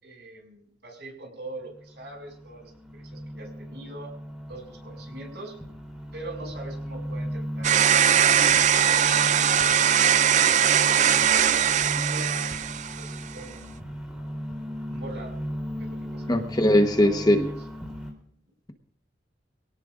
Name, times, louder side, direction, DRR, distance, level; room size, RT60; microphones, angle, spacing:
voice 1, 0.0-4.1 4.5-5.5 6.1-8.0 8.3-8.5 8.8-10.7 11.2-12.5 13.0-13.8 14.9-15.4 15.8-16.2 17.0-17.5, right 2 dB, 70° right, 2 dB, 6.0 m, -43 dB
sound 1, 1.6-18.1, equal, 5° right, 3.2 m, -36 dB
sound 2, 7.6-13.1, right 9 dB, 40° right, 0.5 m, -20 dB
voice 2, 16.3-17.5, left 1 dB, 20° left, 6 dB, 1.0 m, -20 dB
23.5 x 17.5 x 2.5 m, 0.65 s
head